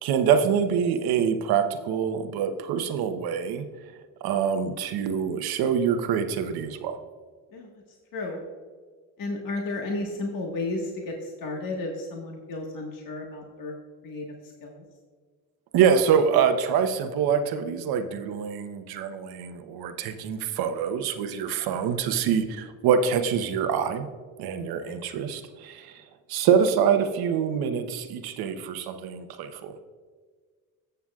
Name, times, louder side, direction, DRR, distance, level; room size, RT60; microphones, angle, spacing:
voice 1, 0.0-3.6 4.2-6.9 15.7-24.1 24.4-25.9 26.3-29.8, right 7 dB, 70° right, 8 dB, 1.0 m, -25 dB
voice 2, 9.2-13.8 14.0-14.8 24.9-25.0, left 2 dB, 55° left, 0 dB, 1.6 m, -33 dB
14.5 x 6.9 x 2.4 m, 1.5 s
supercardioid pair, 75°, 39 cm